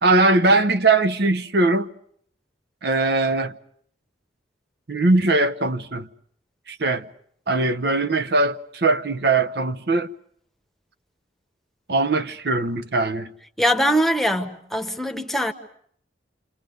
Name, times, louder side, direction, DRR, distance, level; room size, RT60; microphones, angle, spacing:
voice 1, 0.0-1.9 2.8-3.5 4.9-6.1 6.7-7.1 7.5-10.1 11.9-13.3, right 2 dB, 65° right, 0.9 m, -20 dB
voice 2, 13.6-15.5, equal, ahead, 1.1 m, -22 dB
28.5 x 27.0 x 5.3 m
head